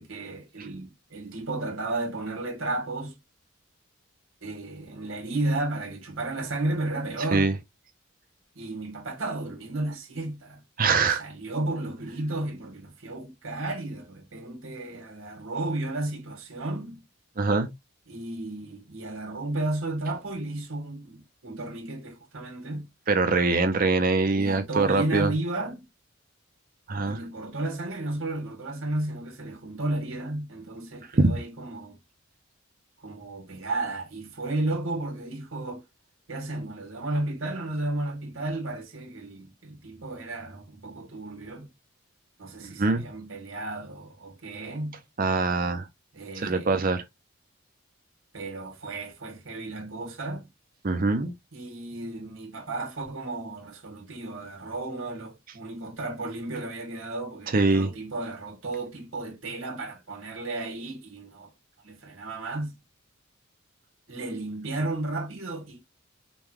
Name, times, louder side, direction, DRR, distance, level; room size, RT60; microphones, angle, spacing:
voice 1, 0.0-3.2 4.4-7.5 8.5-10.6 11.2-17.0 18.1-22.9 24.3-25.9 27.0-32.0 33.0-35.8 36.3-41.7 42.4-45.0 46.1-46.7 48.3-50.4 51.5-61.5 61.8-62.8 64.1-65.8, right 2 dB, 85° right, 1.6 m, -33 dB
voice 2, 10.8-11.2 17.4-17.7 23.1-25.3 26.9-27.2 31.2-31.3 42.6-43.0 45.2-45.9 46.4-47.0 50.8-51.3 57.5-57.9, right 3 dB, 45° right, 0.6 m, -23 dB
5.3 x 2.2 x 3.0 m
head